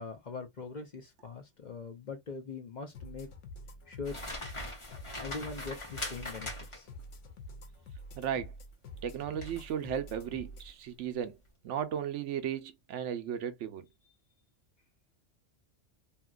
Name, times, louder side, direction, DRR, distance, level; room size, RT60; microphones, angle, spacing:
voice 1, 0.0-3.3 3.9-4.2 5.2-6.9, left 4 dB, 45° left, 0.8 m, -42 dB
sound 1, 2.9-10.7, left 1 dB, 85° left, 1.1 m, -47 dB
sound 2, 4.0-7.0 9.4-9.7 10.2-10.4, left 1 dB, 25° left, 1.3 m, -41 dB
voice 2, 8.2-8.5 9.0-11.4 11.6-13.9, right 9 dB, 80° right, 0.9 m, -35 dB
2.8 x 2.8 x 2.3 m
omnidirectional pair, 1.2 m